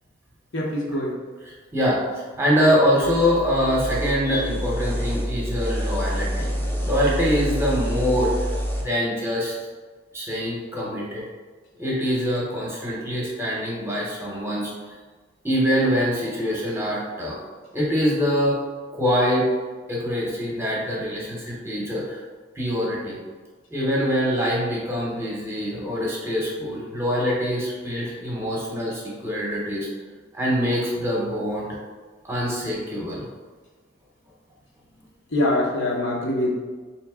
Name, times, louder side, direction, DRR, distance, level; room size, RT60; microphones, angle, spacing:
voice 1, 0.5-1.2 35.3-36.6, left 1 dB, 75° left, -3 dB, 0.9 m, -23 dB
voice 2, 1.7-8.5 8.8-9.6 10.1-11.2 11.8-14.7 15.4-17.4 17.7-18.6 18.9-19.5 19.9-22.2 22.5-23.2 23.7-29.9 30.3-31.8 32.2-33.2, equal, 15° right, -4 dB, 0.8 m, -24 dB
sound 1, 3.0-8.8, equal, 10° left, 0.5 m, -27 dB
3.9 x 3.0 x 3.5 m, 1.4 s
head